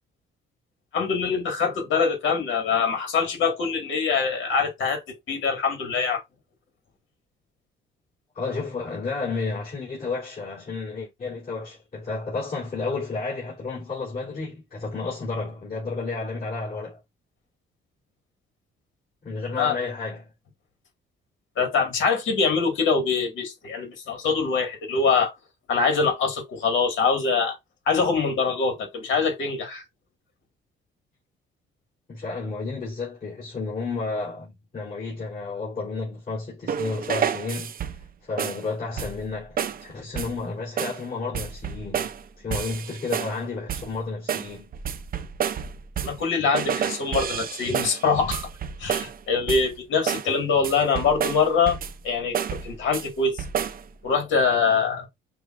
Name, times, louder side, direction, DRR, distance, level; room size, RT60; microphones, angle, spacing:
voice 1, 0.9-5.0 5.3-6.2 19.6-19.7 21.6-25.3 25.7-27.6 27.9-29.8 46.0-48.5 48.8-51.8 52.0-52.4 52.6-53.4 54.0-55.1, left 5 dB, 75° left, 1.7 m, -24 dB
voice 2, 8.3-17.0 19.2-20.3 32.1-44.7, left 3 dB, 45° left, 3.1 m, -32 dB
sound 1, 36.7-38.1 38.4-38.7 39.0-39.3 39.6-39.8 40.2-40.4 40.8-41.0 41.3-42.2 42.5-43.4 43.7-44.0 44.3-46.3 46.5-49.2 49.5-49.8 50.1-50.3 50.6-52.0 52.3-53.1 53.4-53.8, right 8 dB, 45° right, 0.5 m, -30 dB
6.6 x 2.4 x 2.4 m
cardioid pair, 90°, 20 cm